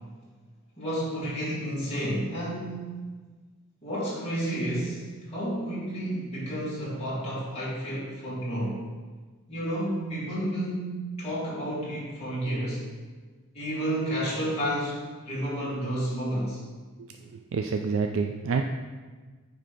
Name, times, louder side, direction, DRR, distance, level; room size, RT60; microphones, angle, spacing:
voice 1, 0.8-3.0 3.8-8.8 9.5-12.8 13.5-16.6, right 1 dB, 30° left, -8 dB, 2.3 m, -31 dB
voice 2, 17.5-18.6, right 5 dB, 60° right, 5 dB, 0.3 m, -27 dB
8.9 x 3.3 x 5.1 m, 1.4 s
head